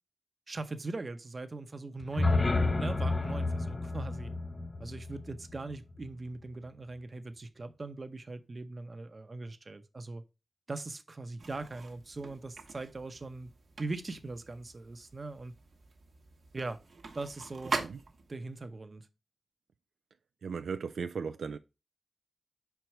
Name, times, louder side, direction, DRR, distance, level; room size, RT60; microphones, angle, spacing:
voice 1, 0.5-2.4 2.8-4.3 4.8-10.2 10.7-13.5 13.8-15.5 16.5-16.8 17.1-17.8 18.3-19.1, right 3 dB, 45° right, 0.8 m, -40 dB
sound 1, 2.0-6.1, left 2 dB, 40° left, 0.7 m, -31 dB
sound 2, 11.4-18.5, right 4 dB, 65° right, 1.1 m, -43 dB
voice 2, 20.4-21.6, right 6 dB, 85° right, 0.3 m, -36 dB
5.2 x 4.6 x 4.6 m
wide cardioid pair, 75°, 0 cm